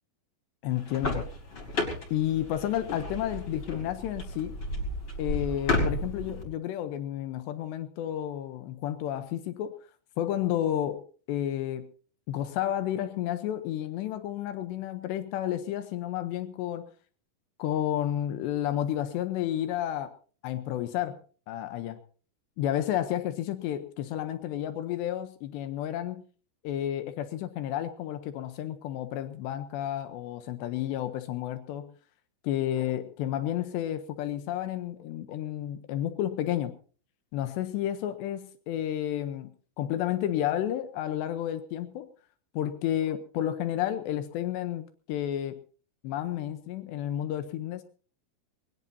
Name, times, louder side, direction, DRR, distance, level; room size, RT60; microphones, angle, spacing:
voice 1, 0.6-1.3 2.1-4.6 5.2-9.8 10.2-11.0 11.3-11.9 12.3-16.9 17.6-20.1 20.4-21.2 21.5-22.0 22.6-26.2 26.6-31.9 32.4-36.7 37.3-42.1 42.5-45.6 46.0-47.8, left 11 dB, 80° left, 10 dB, 2.6 m, -31 dB
sound 1, 0.7-6.4, left 2 dB, 25° left, 4.2 m, -32 dB
21.5 x 20.5 x 2.7 m, 0.42 s
omnidirectional pair, 5.8 m